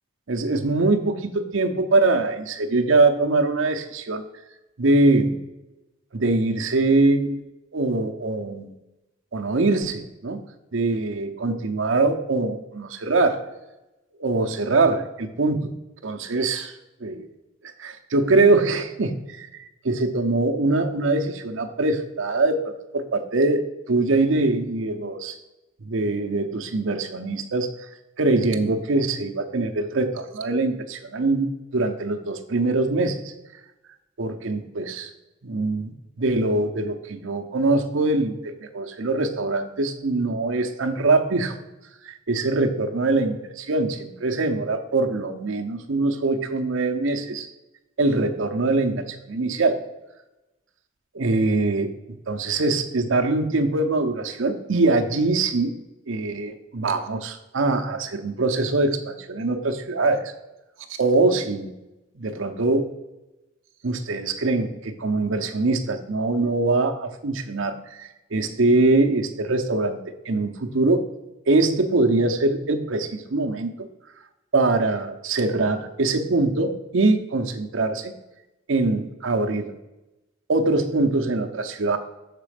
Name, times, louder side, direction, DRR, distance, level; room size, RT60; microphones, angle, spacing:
voice 1, 0.3-4.2 4.8-5.4 6.1-7.4 7.7-8.7 9.3-10.4 10.7-13.4 14.2-16.7 17.0-17.3 17.6-25.4 25.8-27.7 28.2-33.3 34.2-35.1 35.4-41.5 42.0-47.5 48.0-49.8 51.1-51.9 52.3-55.7 56.1-60.3 61.0-61.7 62.2-62.9 63.8-70.0 70.2-71.0 71.5-73.7 74.5-78.1 78.7-79.7 80.5-82.0, right 2 dB, 70° right, 5 dB, 0.7 m, -23 dB
6.7 x 4.1 x 5.0 m, 1.0 s
head